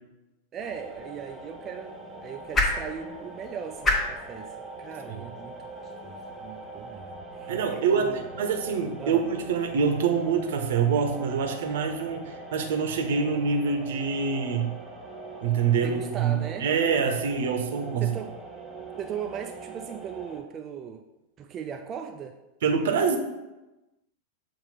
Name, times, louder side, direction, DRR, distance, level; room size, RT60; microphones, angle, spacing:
voice 1, 0.5-8.3 9.0-9.2 15.8-16.7 18.0-18.3 19.0-21.0 21.4-22.4, right 7 dB, 30° right, 4 dB, 0.4 m, -38 dB
sound 1, 0.6-20.4, right 3 dB, 10° right, 1.2 m, -42 dB
sound 2, 0.7-7.0, left 2 dB, 15° left, 1.0 m, -33 dB
voice 2, 7.5-14.7 15.4-16.3 16.6-18.1 22.6-23.2, right 6 dB, 60° right, 4 dB, 0.8 m, -25 dB
7.3 x 2.5 x 5.6 m, 1.0 s
figure-of-eight pair, 90°, 0 cm